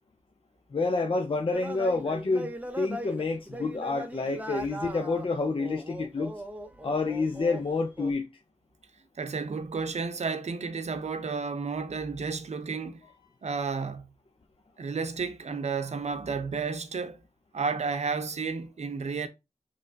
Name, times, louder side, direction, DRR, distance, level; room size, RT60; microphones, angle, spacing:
voice 1, 0.7-6.3 6.8-8.3, left 3 dB, 45° left, 0.6 m, -28 dB
sound 1, 1.5-7.7 8.0-8.1, right 1 dB, 10° right, 0.7 m, -39 dB
voice 2, 9.2-13.0 13.4-14.0 14.8-17.2 17.5-19.3, right 5 dB, 65° right, 0.7 m, -32 dB
5.3 x 3.3 x 2.7 m
cardioid pair, 45°, 12 cm